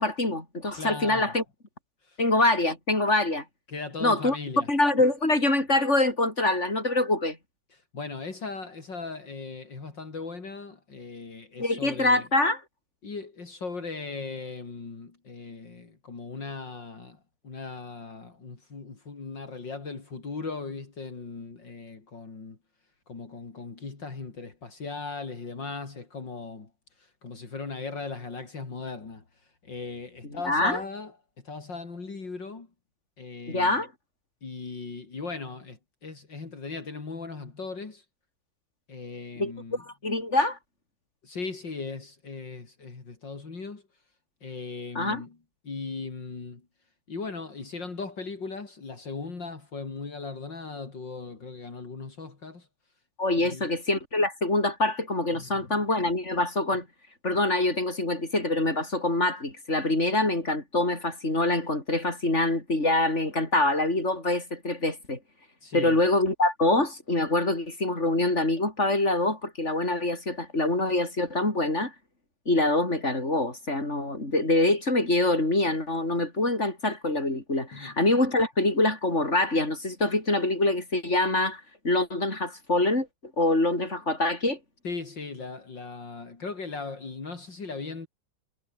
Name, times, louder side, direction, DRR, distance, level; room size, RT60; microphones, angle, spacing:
voice 1, 0.0-1.4 2.2-3.4 4.0-4.4 4.7-7.4 11.6-12.6 30.5-30.8 33.5-33.9 39.4-40.6 45.0-45.2 53.2-56.9 57.2-65.2 65.7-71.9 72.5-83.1 83.4-84.6, left 2 dB, 35° left, 7.1 m, -25 dB
voice 2, 0.8-1.4 2.0-2.2 3.7-4.7 7.7-12.3 13.0-22.6 23.1-26.7 27.0-32.7 33.2-33.8 34.4-38.0 38.9-39.8 41.2-43.8 44.4-45.4 45.6-46.6 47.1-52.7 53.4-53.7 55.3-55.5 65.6-66.0 77.7-78.0 84.8-88.1, left 4 dB, 65° left, 4.4 m, -38 dB
omnidirectional pair, 2.1 m